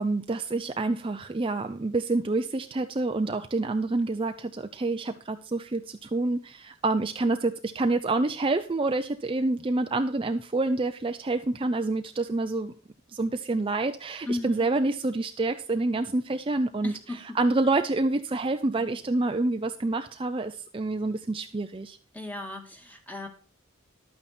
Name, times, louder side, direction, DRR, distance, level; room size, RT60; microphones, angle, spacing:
voice 1, 0.0-12.7 13.1-16.9 17.3-22.0, right 2 dB, 25° right, 7 dB, 0.5 m, -27 dB
voice 2, 14.3-14.7 16.8-17.4 18.8-19.0 22.1-23.3, left 2 dB, 10° left, 4 dB, 1.9 m, -36 dB
11.5 x 9.0 x 4.3 m, 0.40 s
head